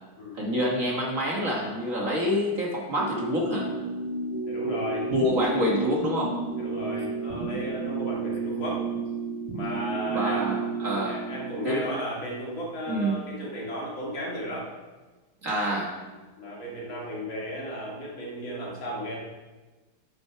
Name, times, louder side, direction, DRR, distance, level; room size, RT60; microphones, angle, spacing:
voice 1, 0.3-3.7 5.1-6.4 10.1-11.2 11.6-11.9 12.9-13.2 15.4-15.9, equal, 40° right, -2 dB, 1.6 m, -27 dB
sound 1, 3.0-11.7, right 3 dB, 65° right, 1.8 m, -32 dB
voice 2, 4.4-5.1 6.5-8.9 9.5-10.7 11.0-14.7 16.4-19.2, equal, 65° left, -3 dB, 2.9 m, -34 dB
9.3 x 6.4 x 5.7 m, 1.2 s
omnidirectional pair, 2.3 m